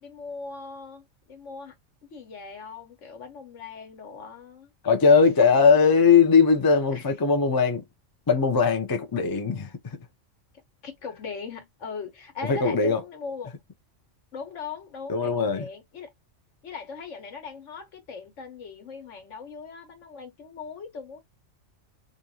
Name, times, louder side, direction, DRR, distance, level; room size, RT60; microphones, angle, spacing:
voice 1, 0.0-1.7 2.0-4.7 5.1-5.7 6.9-7.1 10.8-13.5 14.3-16.1 16.6-21.2, left 5 dB, 80° left, 1.4 m, -39 dB
voice 2, 4.8-7.8 8.3-10.0 12.4-13.0 15.1-15.7, left 5 dB, 30° left, 0.4 m, -20 dB
3.6 x 2.6 x 2.8 m
omnidirectional pair, 1.3 m